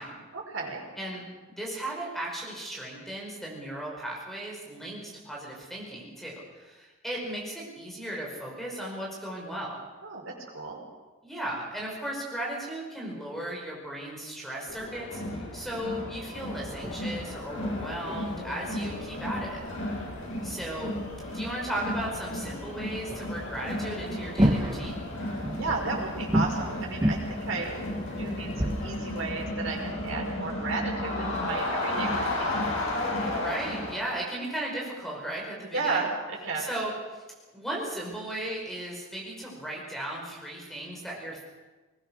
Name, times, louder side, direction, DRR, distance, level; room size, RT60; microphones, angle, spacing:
voice 1, 0.3-0.8 10.0-10.8 19.8-20.2 25.6-27.7 28.2-32.5 35.7-36.7, right 3 dB, 65° right, -1 dB, 5.3 m, -33 dB
voice 2, 1.0-9.8 11.2-19.6 20.4-20.9 21.3-25.0 33.1-36.1 36.6-37.2 37.5-41.4, right 1 dB, ahead, -3 dB, 5.4 m, -36 dB
Crowd, 14.7-34.1, left 1 dB, 70° left, 7.4 m, -33 dB
sound 1, 16.3-29.0, equal, 20° right, 1.6 m, -33 dB
21.0 x 20.0 x 6.6 m, 1.2 s
head